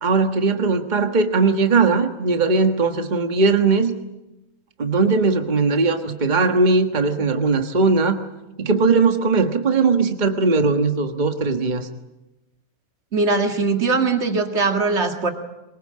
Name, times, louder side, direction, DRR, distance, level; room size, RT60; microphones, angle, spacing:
voice 1, 0.0-3.9 4.8-8.2 8.6-11.9, right 4 dB, 30° right, 7 dB, 1.5 m, -19 dB
voice 2, 13.1-15.3, right 3 dB, 50° right, 5 dB, 2.3 m, -20 dB
23.0 x 21.5 x 8.7 m, 0.97 s
omnidirectional pair, 1.5 m